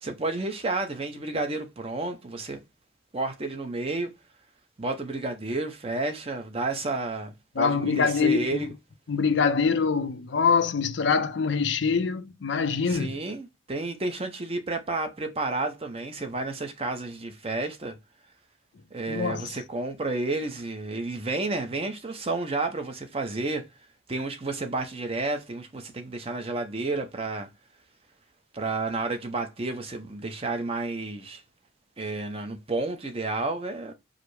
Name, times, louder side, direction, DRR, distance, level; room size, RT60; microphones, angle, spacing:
voice 1, 0.0-2.6 3.1-4.1 4.8-8.7 12.9-18.0 18.9-23.7 24.1-27.5 28.5-31.4 32.0-33.9, right 2 dB, 30° right, 0.7 m, -31 dB
voice 2, 7.6-8.7 9.1-13.1 19.1-19.5, left 5 dB, 65° left, 0.5 m, -24 dB
4.9 x 2.0 x 4.6 m
head